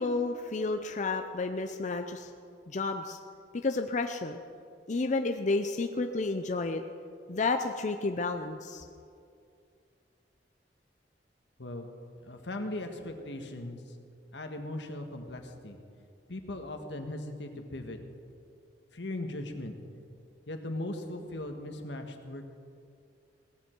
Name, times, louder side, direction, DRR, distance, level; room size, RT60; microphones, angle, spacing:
voice 1, 0.0-2.3 2.7-3.2 3.6-4.4 4.9-6.8 7.3-8.8, left 3 dB, 45° left, 6 dB, 0.6 m, -31 dB
voice 2, 12.2-13.8 14.3-15.8 16.3-18.0 18.9-19.7 20.5-22.5, left 1 dB, 85° left, 5 dB, 1.5 m, -38 dB
18.0 x 15.0 x 4.6 m, 2.4 s
head